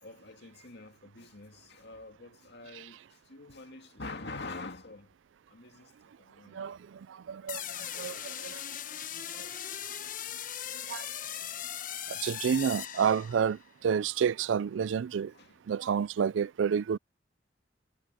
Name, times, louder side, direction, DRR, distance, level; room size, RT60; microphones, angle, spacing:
voice 1, 0.0-5.2 5.5-6.6 7.5-8.6 9.6-9.9 15.3-16.0, left 3 dB, 65° left, 2.2 m, -46 dB
voice 2, 7.3-7.6 7.9-8.6 10.9-11.1 12.1-15.3 15.7-17.0, right 7 dB, 90° right, 0.4 m, -29 dB
sound 1, 7.5-13.6, left 10 dB, 45° left, 1.0 m, -39 dB
head